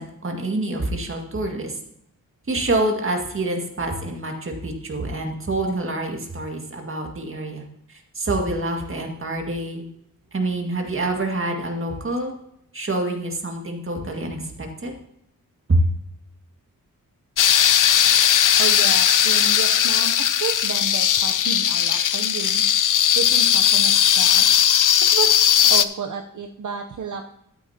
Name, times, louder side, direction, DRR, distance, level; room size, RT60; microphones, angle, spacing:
voice 1, 0.0-1.8 2.5-9.9 10.3-12.3 12.7-14.9 15.7-15.8, right 2 dB, 40° right, 2 dB, 2.0 m, -26 dB
sound 1, 17.4-25.8, left 9 dB, 65° left, 0.5 m, -18 dB
voice 2, 18.6-22.6 23.1-24.5 25.1-25.4 25.7-27.3, right 6 dB, 60° right, 3 dB, 0.8 m, -31 dB
12.5 x 9.4 x 2.9 m, 0.75 s
wide cardioid pair, 120°, 34 cm